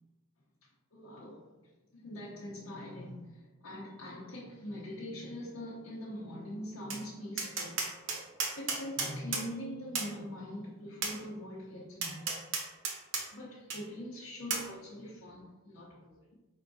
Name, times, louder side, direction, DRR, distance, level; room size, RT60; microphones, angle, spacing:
voice 1, 0.9-1.6 1.9-7.9 8.5-12.4 13.3-16.3, equal, 75° left, 0.8 m, -43 dB
Tap, 6.9-7.0 7.4-9.5 9.9-10.1 11.0-11.2 12.0-13.2 13.7-13.8 14.5-14.7, right 4 dB, 60° right, 0.7 m, -33 dB
4.6 x 3.7 x 2.6 m
head